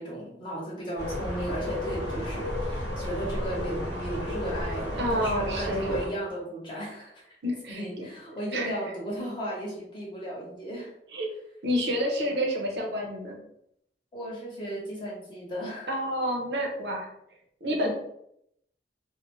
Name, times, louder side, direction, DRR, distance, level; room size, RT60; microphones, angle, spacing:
voice 1, 0.0-7.4 7.7-10.9 14.1-15.9 17.8-17.9, right 1 dB, 30° left, -5 dB, 0.9 m, -35 dB
sound 1, 1.0-6.1, left 1 dB, 75° left, 1.0 m, -33 dB
voice 2, 5.0-6.0 7.4-8.1 8.5-8.8 11.1-11.3 11.6-13.4 15.9-17.1 17.6-17.9, equal, 70° right, 1 dB, 0.6 m, -29 dB
2.5 x 2.1 x 3.0 m, 0.75 s
head